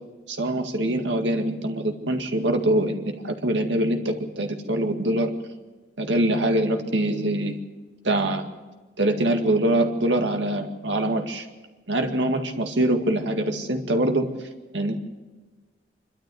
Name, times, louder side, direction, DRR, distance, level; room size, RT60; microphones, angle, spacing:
voice 1, 0.3-5.3 6.0-7.6 8.0-8.5 9.0-11.5 11.9-14.3 14.7-15.0, right 1 dB, 75° right, 5 dB, 2.1 m, -24 dB
26.0 x 12.5 x 8.0 m, 1.3 s
head